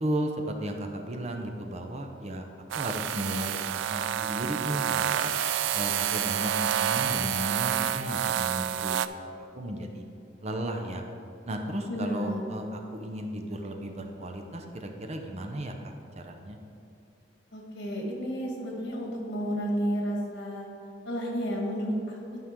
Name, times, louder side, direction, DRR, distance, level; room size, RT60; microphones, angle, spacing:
voice 1, 0.0-2.5 2.7-5.3 5.7-10.0 10.4-11.0 11.5-16.6, right 1 dB, 35° right, 4 dB, 0.6 m, -34 dB
sound 1, 2.7-9.1, right 10 dB, 80° right, 0.3 m, -28 dB
voice 2, 11.9-12.4 17.5-20.7 21.1-22.4, equal, 65° left, -1 dB, 1.7 m, -31 dB
11.5 x 5.4 x 3.7 m, 2.6 s
head